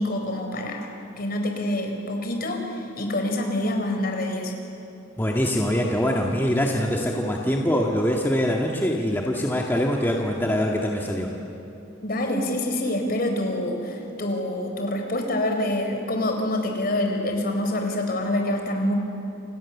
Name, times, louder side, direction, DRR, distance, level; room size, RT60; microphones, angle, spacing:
voice 1, 0.0-4.5 12.0-18.9, left 1 dB, 50° left, 3 dB, 4.4 m, -26 dB
voice 2, 5.2-11.3, equal, 10° left, -1 dB, 1.8 m, -23 dB
29.5 x 28.0 x 7.3 m, 2.8 s
head